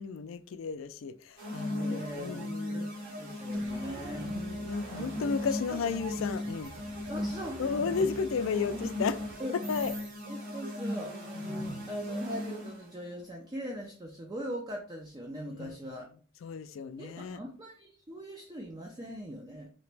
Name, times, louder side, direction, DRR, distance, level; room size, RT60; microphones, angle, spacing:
voice 1, 0.0-3.1 4.2-6.7 7.6-9.3 9.7-9.9 15.5-15.8 16.4-17.4, left 5 dB, 85° left, 0.4 m, -33 dB
sound 1, 1.4-12.9, left 1 dB, 65° right, 2.2 m, -37 dB
voice 2, 1.8-4.4 4.9-5.8 7.1-7.6 9.4-9.6 10.3-11.5 11.9-16.1 17.0-19.7, equal, 20° right, 0.5 m, -41 dB
sound 2, 3.5-9.3, right 1 dB, 80° right, 1.2 m, -50 dB
sound 3, 5.8-5.9 6.5-6.8 9.6-10.2, right 5 dB, 50° right, 1.0 m, -46 dB
4.0 x 2.9 x 3.3 m
head